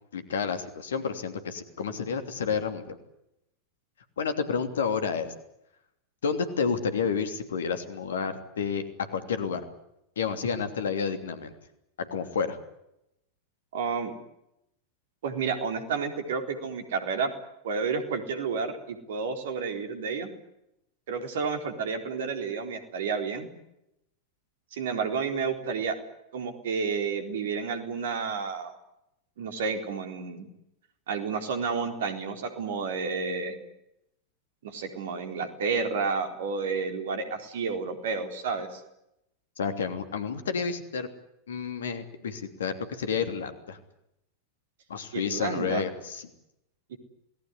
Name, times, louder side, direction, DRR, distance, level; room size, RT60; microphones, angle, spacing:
voice 1, 0.1-3.0 4.2-5.3 6.2-8.9 9.1-9.6 10.2-11.5 12.0-12.6 39.6-41.1 41.5-43.8 44.9-46.3, left 6 dB, 65° left, 9 dB, 3.0 m, -30 dB
voice 2, 13.7-14.1 15.2-17.3 17.6-20.3 21.1-23.5 24.7-25.9 26.3-28.7 29.4-30.5 31.1-33.6 34.6-38.8 45.1-45.8 46.9-47.0, right 5 dB, 60° right, 7 dB, 4.0 m, -31 dB
28.0 x 19.5 x 9.7 m, 0.85 s
figure-of-eight pair, 90°, 0 cm